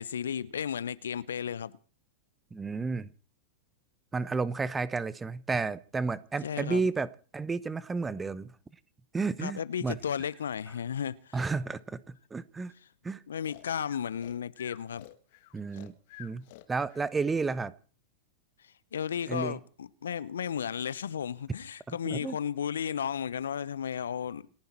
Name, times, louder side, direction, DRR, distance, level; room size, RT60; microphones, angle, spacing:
voice 1, 0.0-1.7 6.4-6.8 9.4-11.4 13.3-15.1 18.6-24.5, left 8 dB, 70° left, 0.8 m, -34 dB
voice 2, 2.5-3.1 4.1-8.5 9.1-10.0 11.3-12.7 13.0-13.2 15.5-15.9 16.2-17.7 19.3-19.6 21.9-22.4, right 4 dB, 15° right, 0.9 m, -32 dB
Breathing, 13.4-17.1, left 17 dB, 50° left, 1.6 m, -51 dB
28.5 x 10.5 x 4.5 m
figure-of-eight pair, 95°, 0 cm